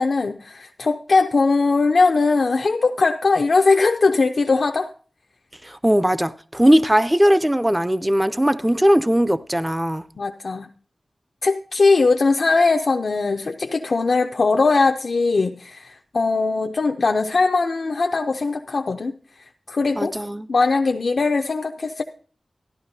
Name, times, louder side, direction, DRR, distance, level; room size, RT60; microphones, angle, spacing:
voice 1, 0.0-4.9 10.2-10.7 11.4-19.1 19.7-20.1 20.5-22.0, left 3 dB, 75° left, 0.5 m, -20 dB
voice 2, 5.6-10.0 20.0-20.5, equal, 15° right, 0.4 m, -19 dB
13.5 x 11.0 x 2.7 m
wide cardioid pair, 65°, 0 cm